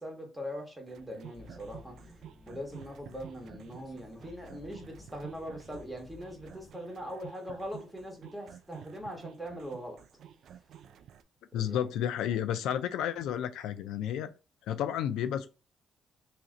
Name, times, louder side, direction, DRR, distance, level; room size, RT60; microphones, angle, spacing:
voice 1, 0.0-1.9 2.5-10.0 11.6-11.9, equal, 5° right, 1.4 m, -41 dB
sound 1, 0.9-11.2, right 10 dB, 70° right, 0.3 m, -51 dB
sound 2, 1.3-6.7, left 3 dB, 35° left, 1.3 m, -54 dB
voice 2, 11.5-14.3 14.7-15.5, left 10 dB, 90° left, 0.3 m, -31 dB
2.9 x 2.8 x 3.7 m
cardioid pair, 90°, 0 cm